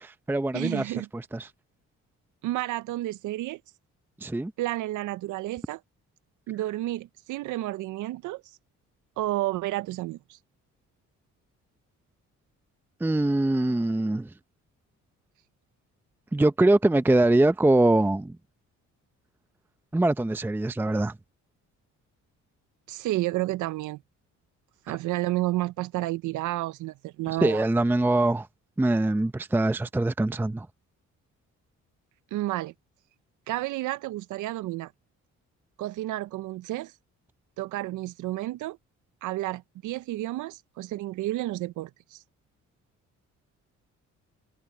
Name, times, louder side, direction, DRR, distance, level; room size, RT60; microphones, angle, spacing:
voice 1, 0.0-1.5 4.2-4.5 13.0-14.3 16.3-18.3 19.9-21.1 27.4-28.5 28.8-30.7, right 2 dB, 5° right, 0.6 m, -23 dB
voice 2, 0.5-1.1 2.4-3.6 4.6-5.8 6.5-8.6 9.2-10.4 22.9-24.0 24.9-27.6 32.3-32.7 33.5-34.9 35.8-37.0 37.6-38.8 39.2-42.2, right 16 dB, 80° right, 0.5 m, -31 dB
cardioid pair, 90°, 30 cm